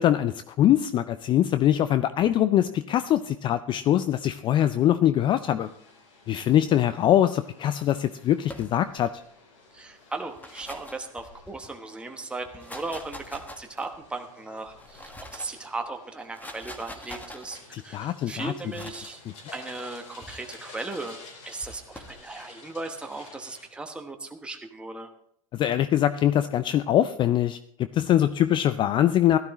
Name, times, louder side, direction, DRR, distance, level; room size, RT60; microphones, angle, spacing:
voice 1, 0.0-5.7 6.3-9.1 17.7-18.5 25.5-27.6 27.9-29.4, left 11 dB, 30° left, 13 dB, 0.4 m, -23 dB
sound 1, 5.6-23.7, left 3 dB, 65° left, 4.3 m, -51 dB
sound 2, 8.4-9.1 10.2-11.7 12.4-14.0 14.7-15.6 16.2-17.6 18.7-19.2 20.2-20.6 21.6-22.2, left 1 dB, 10° left, 1.6 m, -44 dB
voice 2, 9.7-17.6 17.8-19.2 19.5-21.2 21.5-25.1, right 3 dB, 5° right, 4 dB, 1.1 m, -37 dB
16.5 x 12.0 x 3.1 m, 0.71 s
figure-of-eight pair, 90°, 17 cm